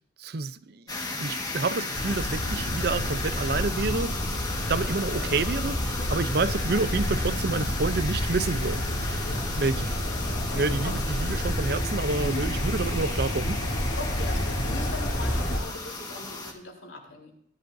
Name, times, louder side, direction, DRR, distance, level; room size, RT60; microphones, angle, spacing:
voice 1, 0.2-4.1 4.7-9.2 9.6-9.9 10.5-13.6, right 3 dB, 55° right, 14 dB, 0.6 m, -29 dB
sound 1, 0.9-16.5, left 3 dB, 20° left, 1.5 m, -35 dB
sound 2, 1.9-15.6, equal, 60° left, 3.1 m, -29 dB
voice 2, 9.2-11.0 12.2-12.5 14.0-17.3, left 2 dB, 90° left, 0 dB, 3.7 m, -40 dB
18.0 x 11.0 x 2.6 m, 0.68 s
head